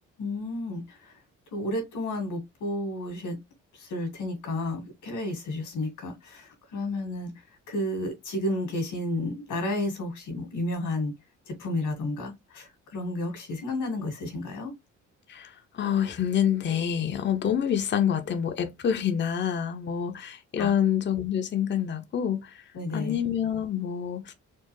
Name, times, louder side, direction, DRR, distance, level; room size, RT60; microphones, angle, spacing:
voice 1, 0.2-1.1 1.5-3.4 3.7-7.3 7.7-11.1 11.5-14.7 20.6-20.7 22.7-23.2, left 1 dB, 85° left, 2.0 m, -32 dB
voice 2, 15.3-22.5 22.9-24.3, left 9 dB, 40° left, 0.6 m, -27 dB
4.3 x 2.3 x 3.0 m
cardioid pair, 90°, 30 cm